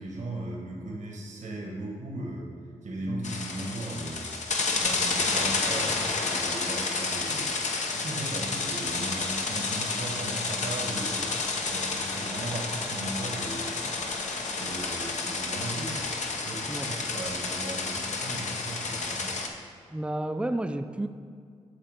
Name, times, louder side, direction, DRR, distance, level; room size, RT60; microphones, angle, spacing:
voice 1, 0.0-2.5 2.8-4.3 4.8-7.5 7.7-11.3 11.7-13.7 14.5-16.1 16.4-19.3, right 1 dB, 70° right, -1 dB, 1.6 m, -37 dB
sound 1, 3.2-19.5, left 3 dB, 70° left, 0.9 m, -30 dB
voice 2, 19.9-21.1, right 1 dB, 10° right, 8 dB, 0.5 m, -31 dB
9.9 x 3.4 x 6.6 m, 2.2 s
cardioid pair, 55°, 13 cm